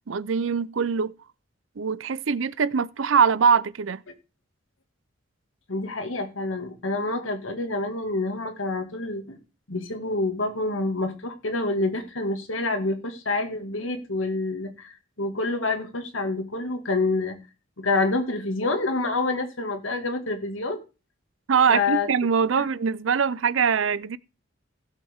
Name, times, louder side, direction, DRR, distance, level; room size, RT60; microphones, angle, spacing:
voice 1, 0.1-1.1 1.8-4.0 21.5-24.2, right 6 dB, 75° right, 0.5 m, -22 dB
voice 2, 5.7-9.4 9.7-17.4 17.8-20.8 21.7-22.1 22.6-22.7, left 2 dB, 80° left, 2.0 m, -27 dB
16.5 x 7.4 x 3.6 m
head